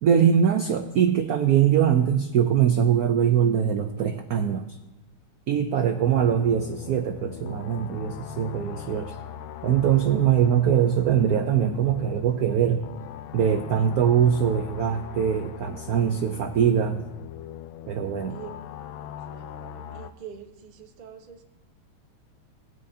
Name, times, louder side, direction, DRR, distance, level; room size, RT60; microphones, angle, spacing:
voice 1, 0.0-4.8 5.5-9.2 9.6-12.9 13.3-17.0 17.8-18.4, right 8 dB, 85° right, 7 dB, 0.8 m, -22 dB
voice 2, 5.7-6.4 18.3-18.6 19.3-21.4, right 8 dB, 50° right, 4 dB, 0.6 m, -46 dB
sound 1, 5.9-20.1, left 10 dB, 75° left, 1.3 m, -41 dB
18.5 x 10.0 x 2.8 m, 0.98 s
omnidirectional pair, 2.3 m